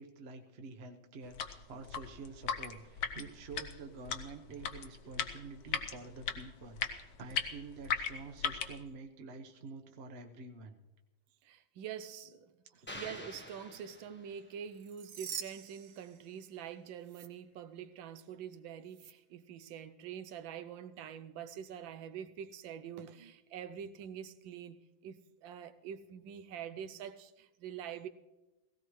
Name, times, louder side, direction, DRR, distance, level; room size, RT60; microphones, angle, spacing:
voice 1, 0.0-10.8 12.6-12.9, right 3 dB, 40° right, 1.0 m, -48 dB
sound 1, 1.2-8.8, left 7 dB, 60° left, 1.2 m, -38 dB
voice 2, 11.4-28.1, right 8 dB, 85° right, 1.4 m, -45 dB
sound 2, 12.9-14.6, equal, 10° left, 0.5 m, -48 dB
sound 3, 14.7-16.7 17.0-17.3 18.9-19.1, right 8 dB, 65° right, 1.2 m, -46 dB
17.0 x 17.0 x 3.1 m
omnidirectional pair, 2.1 m